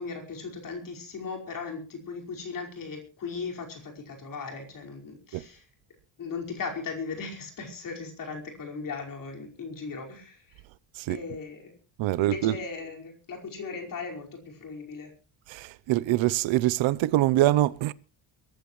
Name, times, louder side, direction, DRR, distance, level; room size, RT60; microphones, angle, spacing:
voice 1, 0.0-5.6 6.2-10.4 11.1-11.7 12.2-15.1, left 4 dB, 40° left, 5.2 m, -37 dB
voice 2, 12.0-12.6 15.5-17.9, right 15 dB, 70° right, 0.8 m, -24 dB
23.0 x 14.0 x 3.2 m
cardioid pair, 165°, 48 cm